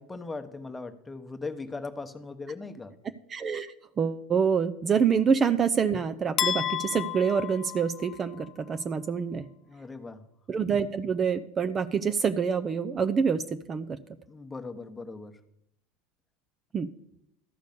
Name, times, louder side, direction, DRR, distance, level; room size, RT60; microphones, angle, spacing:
voice 1, 0.0-2.9 9.6-10.3 14.3-15.4, left 3 dB, 15° left, 7 dB, 1.1 m, -39 dB
voice 2, 3.3-9.5 10.5-14.0 16.7-16.9, right 6 dB, 30° right, 10 dB, 0.5 m, -26 dB
sound 1, 6.4-8.5, left 10 dB, 40° left, 0.4 m, -32 dB
13.0 x 5.1 x 6.8 m, 0.81 s
figure-of-eight pair, 75°, 0 cm